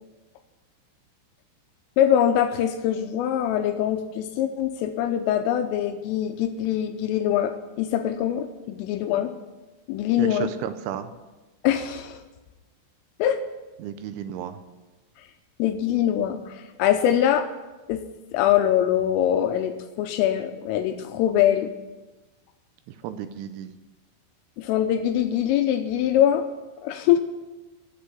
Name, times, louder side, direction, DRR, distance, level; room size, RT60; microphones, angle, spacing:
voice 1, 2.0-7.5 7.8-9.3 9.9-10.5 11.6-12.2 13.2-13.4 15.6-17.5 17.9-18.0 18.3-21.7 24.6-26.5 26.8-27.2, left 10 dB, 85° left, 7 dB, 3.2 m, -23 dB
voice 2, 10.2-11.1 13.8-14.6 22.9-23.7, right 10 dB, 80° right, 10 dB, 2.8 m, -33 dB
10.5 x 7.9 x 9.2 m, 1.1 s
omnidirectional pair, 5.9 m